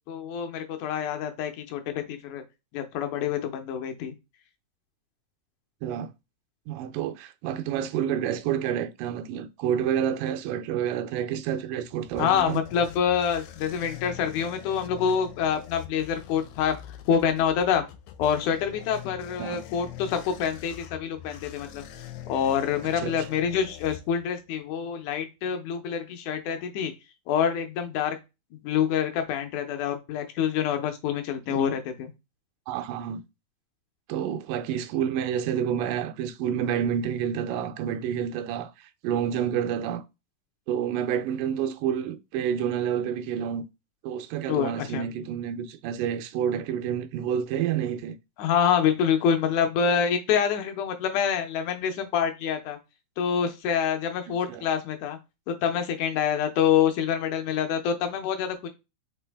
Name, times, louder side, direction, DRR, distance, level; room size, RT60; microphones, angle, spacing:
voice 1, 0.1-2.4 2.7-4.2 12.2-16.8 17.1-17.9 18.2-21.9 22.3-26.9 27.3-28.2 28.6-32.1 44.5-45.1 48.4-52.8 53.2-55.2 55.5-58.7, left 8 dB, 75° left, 2.0 m, -26 dB
voice 2, 6.7-12.6 19.4-19.6 23.0-23.1 31.5-31.6 32.7-33.2 34.1-40.0 40.7-43.7 44.0-48.2 54.5-54.7, right 9 dB, 80° right, 2.1 m, -29 dB
sound 1, 11.7-24.6, left 11 dB, 90° left, 2.3 m, -44 dB
5.2 x 2.9 x 3.4 m
omnidirectional pair, 4.0 m